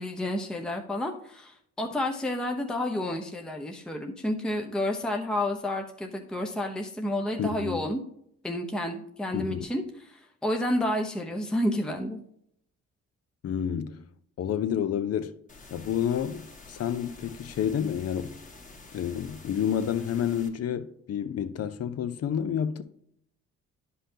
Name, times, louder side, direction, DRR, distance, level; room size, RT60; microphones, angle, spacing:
voice 1, 0.0-8.0 8.4-12.2, left 1 dB, 5° left, 0.7 m, -30 dB
voice 2, 7.4-7.8 9.3-9.6 13.4-14.0 14.4-15.4 15.7-18.4 18.9-22.8, left 9 dB, 55° left, 0.7 m, -29 dB
sound 1, 15.5-20.5, left 3 dB, 25° left, 1.4 m, -49 dB
10.0 x 5.6 x 2.8 m
cardioid pair, 90°, 30 cm